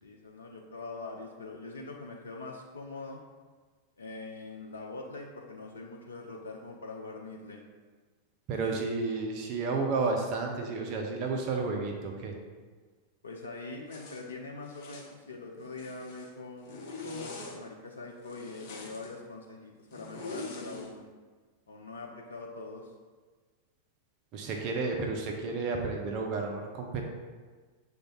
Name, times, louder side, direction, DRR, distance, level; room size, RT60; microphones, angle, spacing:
voice 1, 0.0-3.2 4.0-7.7 13.2-21.1 21.7-22.9, left 3 dB, 70° left, 0 dB, 0.4 m, -43 dB
voice 2, 8.5-12.4 24.3-27.0, right 3 dB, 40° right, 1 dB, 0.5 m, -31 dB
Zipper (clothing), 13.9-14.2 14.7-15.1 15.6-16.3 16.6-17.6 18.2-19.1 19.9-20.9, left 3 dB, 50° left, 0.8 m, -43 dB
6.2 x 2.2 x 3.0 m, 1.4 s
figure-of-eight pair, 90°, 0 cm